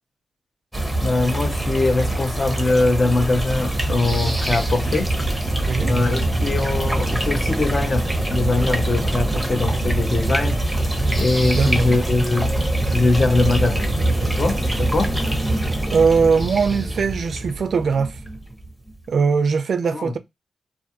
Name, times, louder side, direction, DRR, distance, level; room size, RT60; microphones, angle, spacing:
sound 1, 0.7-18.9, right 1 dB, ahead, 0.8 m, -23 dB
voice 1, 1.0-5.1 5.9-10.6 11.2-12.5 12.9-13.9 14.3-15.2 19.9-20.1, left 3 dB, 45° left, 0.6 m, -22 dB
voice 2, 11.5-12.0 15.9-18.2 19.1-20.2, right 5 dB, 70° right, 0.3 m, -20 dB
2.4 x 2.3 x 2.7 m
cardioid pair, 55°, 0 cm